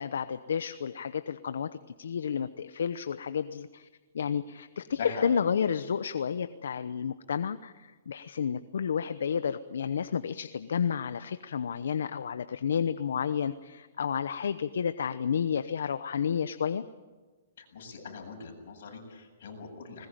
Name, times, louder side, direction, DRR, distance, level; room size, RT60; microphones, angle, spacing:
voice 1, 0.0-3.9 4.1-16.8, left 7 dB, 85° left, 13 dB, 0.8 m, -31 dB
voice 2, 17.6-20.1, left 5 dB, 60° left, 2 dB, 7.9 m, -41 dB
21.0 x 20.5 x 9.1 m, 1.3 s
hypercardioid pair, 160°, 0 cm